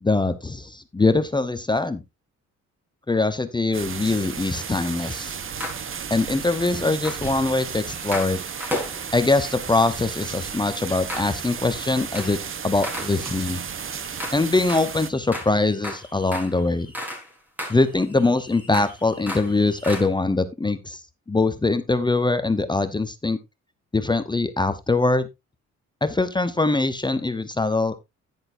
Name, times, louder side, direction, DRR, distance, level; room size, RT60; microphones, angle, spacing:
voice 1, 0.0-2.0 3.1-5.3 6.1-8.4 9.1-12.4 12.6-13.6 14.3-16.9 17.7-21.0 21.3-23.4 23.9-25.3 26.0-28.0, left 3 dB, 15° left, 11 dB, 0.9 m, -22 dB
sound 1, 3.7-15.1, right 7 dB, 45° right, 1.1 m, -34 dB
sound 2, 5.6-6.5 7.0-9.4 10.1-10.6 11.1-11.6 11.8-12.4 12.8-17.3 17.6-20.1, left 1 dB, 5° right, 4.4 m, -36 dB
10.5 x 10.5 x 2.7 m, 0.22 s
cardioid pair, 90°, 30 cm